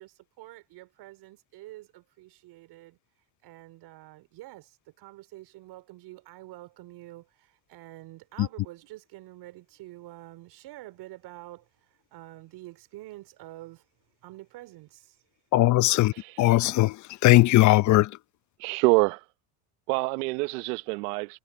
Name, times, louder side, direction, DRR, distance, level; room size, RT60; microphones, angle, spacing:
voice 1, 0.0-13.9 14.2-15.3 15.7-16.0, right 17 dB, 55° right, 4.1 m, -47 dB
voice 2, 15.5-18.1, left 17 dB, 40° left, 0.7 m, -20 dB
voice 3, 16.1-16.6 18.6-19.2 19.9-21.4, right 25 dB, 75° right, 1.2 m, -26 dB
supercardioid pair, 115°, 46 cm